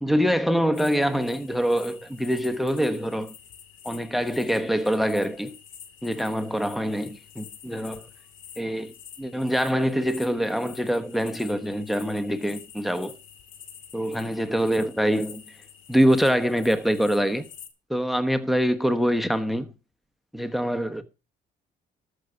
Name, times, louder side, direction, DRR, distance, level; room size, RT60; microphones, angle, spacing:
voice 1, 0.0-3.3 3.8-5.5 6.0-8.0 8.6-8.9 9.2-13.2 13.9-15.4 15.9-17.4 17.9-19.7 20.3-21.0, equal, ahead, 1.2 m, -24 dB
sound 1, 0.7-17.7, left 8 dB, 75° left, 2.4 m, -47 dB
13.5 x 6.5 x 7.0 m
cardioid pair, 90°, 20 cm